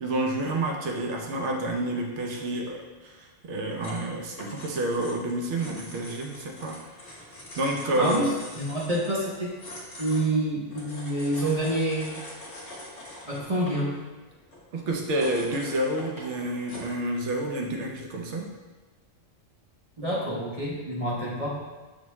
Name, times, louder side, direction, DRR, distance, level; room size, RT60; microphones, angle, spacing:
voice 1, 0.0-6.8 7.1-7.3 7.6-8.2 14.7-18.5, right 1 dB, 65° right, 1 dB, 0.9 m, -29 dB
sound 1, 3.8-17.0, left 1 dB, 40° left, 0.9 m, -44 dB
voice 2, 8.0-9.5 10.0-12.2 13.2-13.9 20.0-21.6, right 1 dB, 35° right, -6 dB, 0.7 m, -27 dB
6.2 x 2.2 x 3.0 m, 1.3 s
omnidirectional pair, 1.3 m